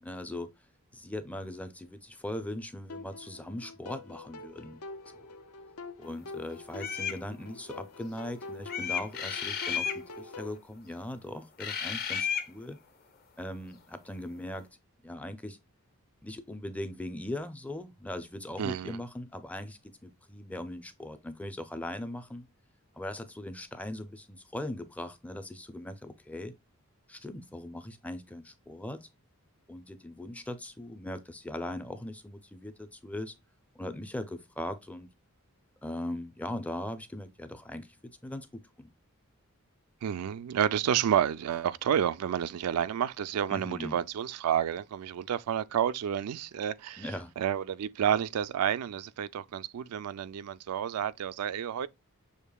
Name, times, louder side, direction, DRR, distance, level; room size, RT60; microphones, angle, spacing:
voice 1, 0.0-0.5 0.9-4.8 5.1-5.3 6.0-12.8 13.4-14.7 15.0-15.6 16.2-22.5 23.0-26.5 27.1-29.1 29.7-33.3 33.8-35.1 35.8-38.9 43.5-44.0 47.0-47.3, left 1 dB, 5° left, 0.4 m, -40 dB
sound 1, 2.9-10.6, left 3 dB, 80° left, 0.7 m, -45 dB
sound 2, 6.8-7.2 8.7-10.0 11.6-12.5, left 7 dB, 45° left, 0.8 m, -32 dB
voice 2, 18.6-19.0 40.0-47.0 47.4-51.9, right 9 dB, 80° right, 0.3 m, -30 dB
6.5 x 2.8 x 2.2 m
head